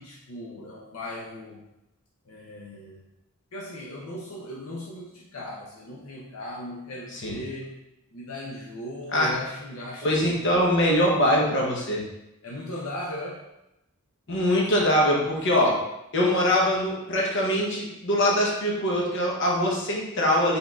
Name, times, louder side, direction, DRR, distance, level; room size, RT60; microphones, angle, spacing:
voice 1, 0.0-1.6 2.2-3.0 3.5-7.8 8.1-10.4 12.4-13.5, left 1 dB, 85° left, -3 dB, 0.6 m, -38 dB
voice 2, 10.0-12.0 14.3-15.8 16.1-20.6, equal, 60° left, -3 dB, 0.9 m, -23 dB
4.1 x 3.5 x 2.3 m, 0.90 s
head